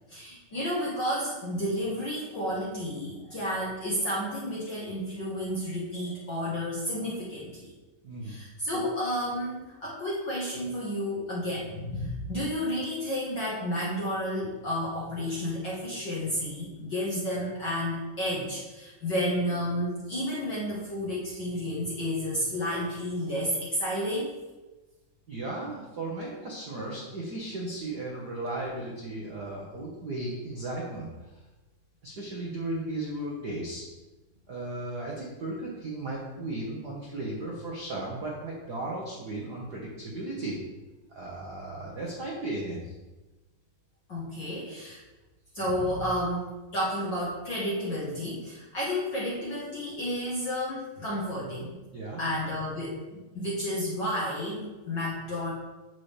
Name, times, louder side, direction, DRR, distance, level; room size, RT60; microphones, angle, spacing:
voice 1, 0.1-7.7 8.2-24.3 44.1-45.0 45.5-51.7 52.2-55.5, equal, 55° left, -5 dB, 1.2 m, -31 dB
voice 2, 8.0-8.4 25.3-31.4 32.0-33.8 34.5-40.6 41.1-42.9 51.9-52.2, right 2 dB, 70° right, -3 dB, 0.9 m, -35 dB
8.6 x 7.4 x 3.3 m, 1.1 s
omnidirectional pair, 3.8 m